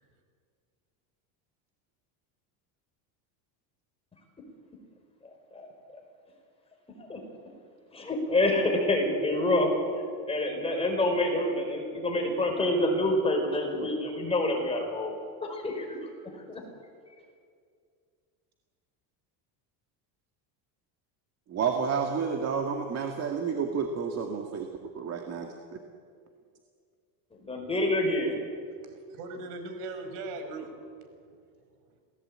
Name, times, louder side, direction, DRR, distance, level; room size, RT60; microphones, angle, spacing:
voice 1, 7.9-15.1 15.4-16.1 16.5-16.6 27.4-28.4, left 1 dB, 15° left, 1 dB, 4.8 m, -27 dB
voice 2, 21.5-24.7 24.9-25.5, right 6 dB, 35° right, 3 dB, 1.9 m, -30 dB
voice 3, 28.8-30.7 31.0-31.4, right 3 dB, 90° right, 6 dB, 5.3 m, -40 dB
27.5 x 18.5 x 8.8 m, 2.2 s
cardioid pair, 160°, 45 cm